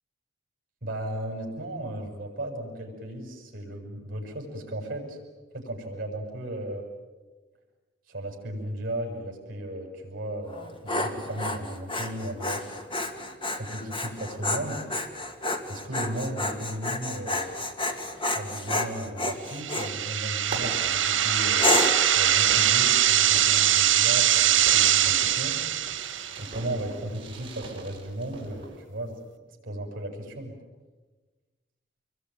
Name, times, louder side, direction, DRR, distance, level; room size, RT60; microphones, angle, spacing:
voice 1, 0.8-5.2 5.5-6.8 8.1-12.6 13.5-14.8 15.7-17.5 18.3-21.7 22.1-25.6 26.4-29.1 29.6-30.5, right 1 dB, 50° right, 1 dB, 7.0 m, -35 dB
Dog, 10.5-19.9 20.5-20.9 21.6-22.1, left 2 dB, 25° left, 2.3 m, -30 dB
sound 1, 19.5-26.5, right 11 dB, 80° right, 1.6 m, -22 dB
Fireworks, 20.4-28.8, right 3 dB, 30° right, 5.4 m, -42 dB
26.5 x 22.0 x 9.5 m, 1.3 s
head